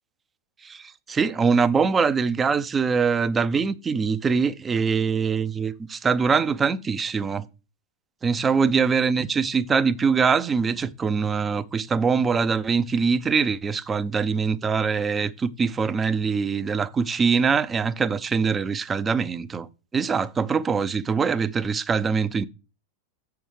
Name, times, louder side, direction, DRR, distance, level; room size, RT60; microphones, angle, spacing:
voice 1, 0.6-7.5 8.2-19.7 19.9-22.5, right 5 dB, 20° right, 0.6 m, -23 dB
7.1 x 5.8 x 6.4 m
figure-of-eight pair, 90°, 0 cm